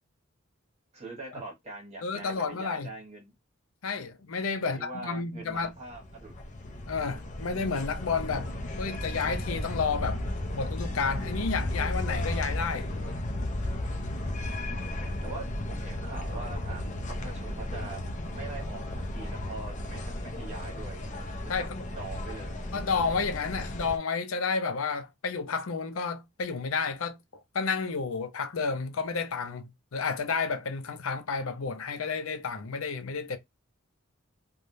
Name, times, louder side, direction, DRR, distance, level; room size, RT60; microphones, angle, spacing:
voice 1, 0.9-3.3 4.6-6.3 14.3-16.9 17.2-18.0 18.3-21.0 21.6-21.7 21.9-22.6, right 3 dB, 35° right, 1.2 m, -43 dB
voice 2, 2.0-2.9 3.8-5.7 6.9-8.5 8.8-10.2 10.5-12.9 21.5-21.8 22.7-27.2 27.5-33.4, left 5 dB, 80° left, 0.6 m, -31 dB
sound 1, 5.5-24.0, left 1 dB, 35° left, 0.6 m, -34 dB
3.3 x 2.3 x 2.6 m
head